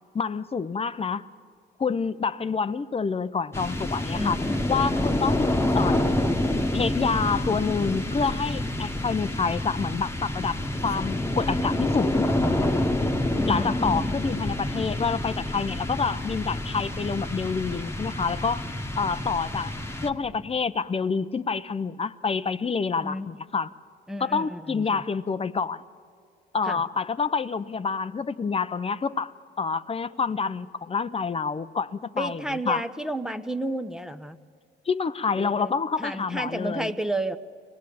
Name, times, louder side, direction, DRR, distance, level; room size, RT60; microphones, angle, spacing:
voice 1, 0.1-1.2 1.8-4.4 4.7-6.0 6.7-12.3 13.5-18.7 19.0-19.7 20.0-23.7 24.2-25.8 26.5-32.4 32.7-32.8 34.9-36.9, left 5 dB, 30° left, 13 dB, 0.8 m, -27 dB
sound 1, 3.5-20.5, left 1 dB, 15° left, 1.5 m, -27 dB
voice 2, 4.1-5.3 13.4-14.1 23.0-23.3 24.1-25.0 26.6-26.8 32.2-34.4 35.3-35.7 36.0-37.4, right 1 dB, 5° right, 7 dB, 0.9 m, -32 dB
24.5 x 18.5 x 8.6 m, 2.2 s
cardioid pair, 90°, 20 cm